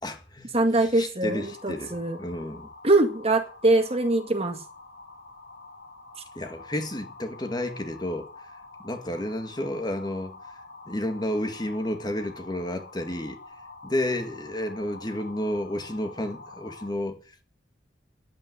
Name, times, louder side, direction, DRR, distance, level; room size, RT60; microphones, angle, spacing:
voice 1, 0.0-2.7 6.4-8.3 8.8-10.4 10.9-13.4 13.8-17.4, left 1 dB, 25° left, 1.9 m, -31 dB
voice 2, 0.5-2.2 2.8-4.6, right 2 dB, 35° right, 1.9 m, -23 dB
sound 1, 1.3-16.9, left 3 dB, 70° left, 5.8 m, -47 dB
11.0 x 9.2 x 9.5 m
head